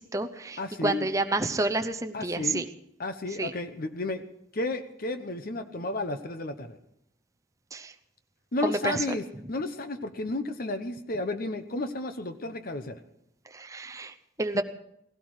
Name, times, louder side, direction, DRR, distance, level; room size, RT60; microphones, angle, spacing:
voice 1, 0.0-2.7 3.4-3.5 7.7-7.9 8.6-9.0 13.5-14.6, right 2 dB, 15° right, 7 dB, 0.7 m, -29 dB
voice 2, 0.6-1.1 2.1-2.6 3.0-4.2 4.5-6.8 8.5-13.0, left 2 dB, 50° left, 9 dB, 1.0 m, -32 dB
16.5 x 16.5 x 4.8 m, 0.77 s
head